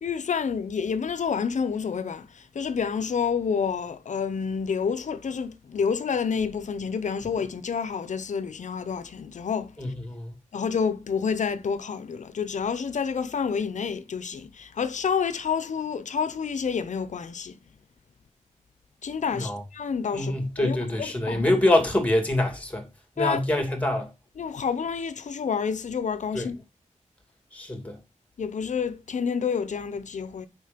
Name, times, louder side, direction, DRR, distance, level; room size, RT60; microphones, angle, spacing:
voice 1, 0.0-9.7 10.5-17.6 19.0-21.5 23.2-23.4 24.4-26.6 28.4-30.5, left 6 dB, 70° left, 0.8 m, -29 dB
voice 2, 9.8-10.3 19.3-19.6 20.1-22.8 23.2-24.1 26.3-26.5 27.5-28.0, left 1 dB, 10° left, 2.4 m, -25 dB
6.7 x 5.2 x 5.1 m
wide cardioid pair, 130°, 13 cm